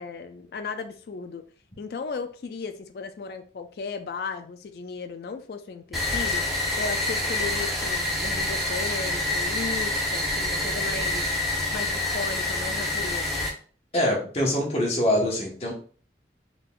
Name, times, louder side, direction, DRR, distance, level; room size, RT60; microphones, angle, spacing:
voice 1, 0.0-1.5 1.8-6.5 6.8-13.5, left 4 dB, 55° left, 8 dB, 0.3 m, -36 dB
sound 1, 5.9-13.5, left 2 dB, ahead, 0.9 m, -27 dB
voice 2, 13.9-15.7, left 1 dB, 35° left, -2 dB, 1.2 m, -24 dB
3.7 x 3.7 x 2.4 m, 0.42 s
head